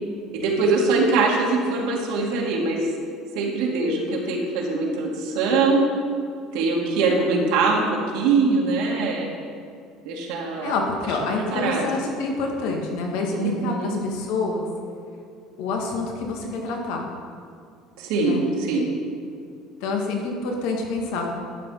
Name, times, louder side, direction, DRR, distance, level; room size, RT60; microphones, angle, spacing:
voice 1, 0.3-2.9 3.3-5.9 6.5-7.9 8.1-9.3 10.1-10.7 11.5-11.9 13.3-14.0 18.0-18.9, right 3 dB, 85° right, -3 dB, 2.1 m, -22 dB
voice 2, 10.6-14.7 15.6-17.1 18.2-18.4 19.8-21.3, left 3 dB, 80° left, 1 dB, 2.0 m, -27 dB
12.5 x 6.3 x 5.6 m, 2.4 s
cardioid pair, 135°, 0 cm